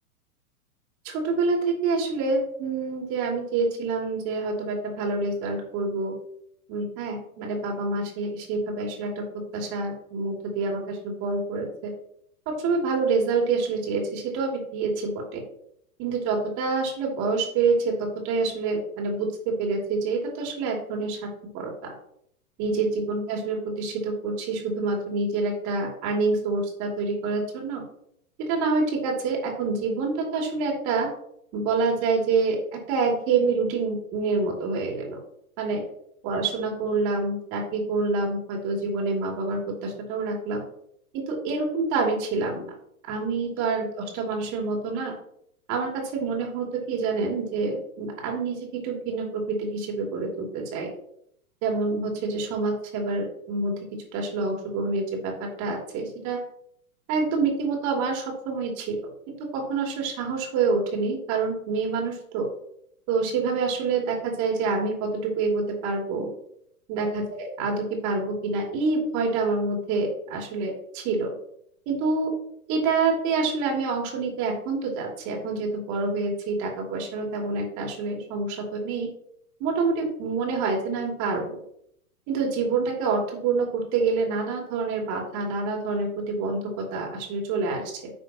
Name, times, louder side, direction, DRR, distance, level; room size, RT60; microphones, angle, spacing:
voice 1, 1.0-6.1 6.7-9.2 9.5-11.9 12.5-15.4 16.0-21.3 21.5-21.9 22.6-27.8 28.5-31.1 31.5-32.6 32.9-35.2 35.6-35.8 36.2-40.6 41.1-42.6 43.1-45.1 45.7-50.9 51.6-53.7 54.1-56.4 57.1-59.0 59.3-62.5 63.1-66.3 66.9-71.3 71.9-72.3 72.7-79.1 79.6-81.6 82.3-88.1, right 4 dB, 40° right, 0 dB, 3.1 m, -27 dB
10.5 x 6.1 x 3.0 m, 0.70 s
hypercardioid pair, 115°, 45 cm